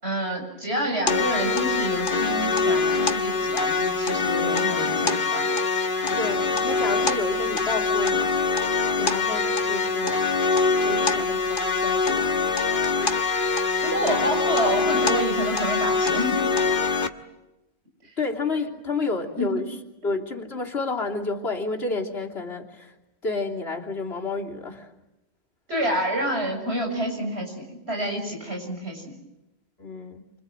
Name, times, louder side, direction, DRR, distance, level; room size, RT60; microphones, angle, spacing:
voice 1, 0.0-5.5 13.8-16.4 19.4-19.5 25.7-29.1, right 1 dB, 85° right, 1 dB, 7.8 m, -28 dB
sound 1, 1.1-17.1, left 4 dB, 55° left, 1.5 m, -24 dB
voice 2, 6.2-8.4 9.0-10.2 10.8-12.5 18.2-19.8 20.0-22.9 23.2-24.9 29.8-30.2, left 3 dB, 75° left, 0 dB, 3.3 m, -30 dB
29.0 x 26.0 x 7.9 m, 0.96 s
omnidirectional pair, 1.1 m